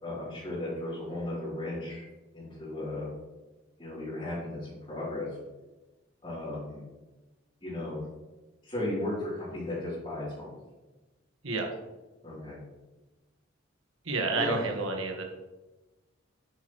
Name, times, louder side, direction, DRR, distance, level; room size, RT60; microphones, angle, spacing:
voice 1, 0.0-2.0 2.3-3.1 3.8-5.3 6.2-6.8 7.6-8.0 8.6-10.5 12.2-12.6 14.3-14.7, left 1 dB, 25° left, -11 dB, 3.2 m, -35 dB
voice 2, 14.0-15.2, right 3 dB, 85° right, 1 dB, 1.4 m, -29 dB
9.2 x 8.8 x 3.1 m, 1.1 s
head